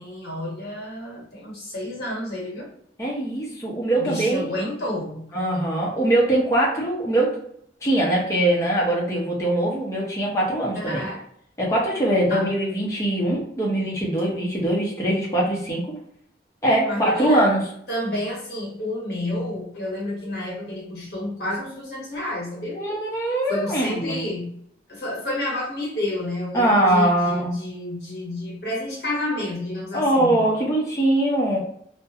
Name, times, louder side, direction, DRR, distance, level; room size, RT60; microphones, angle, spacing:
voice 1, 0.0-2.7 4.0-5.2 10.7-11.2 12.3-12.5 16.8-17.5 17.9-22.8 23.5-24.6 24.9-30.5, left 1 dB, 55° left, -4 dB, 1.0 m, -30 dB
voice 2, 3.0-4.5 5.3-7.4 7.8-11.0 11.6-16.0 16.6-17.6 22.8-24.2 26.5-27.5 29.9-31.6, right 1 dB, 15° left, -4 dB, 0.6 m, -22 dB
2.3 x 2.1 x 2.7 m, 0.68 s
head